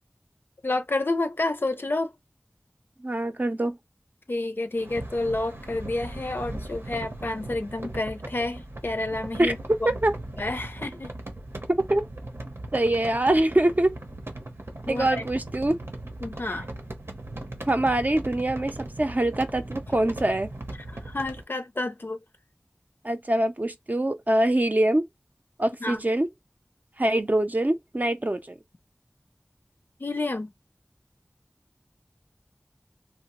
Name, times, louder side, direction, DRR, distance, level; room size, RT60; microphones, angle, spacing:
voice 1, 0.6-2.1 4.3-9.6 10.4-11.1 14.9-15.2 16.2-16.7 21.1-22.2 25.8-26.0 30.0-30.5, left 2 dB, 55° left, 0.4 m, -29 dB
voice 2, 3.0-3.8 9.4-9.5 9.8-10.1 11.9-12.0 12.7-14.0 14.9-15.8 17.7-20.5 23.0-25.0 25.6-26.3 27.0-28.5, right 1 dB, 40° right, 0.5 m, -24 dB
sound 1, 4.8-21.4, right 1 dB, 70° right, 0.8 m, -38 dB
2.9 x 2.1 x 2.9 m
wide cardioid pair, 45°, 4 cm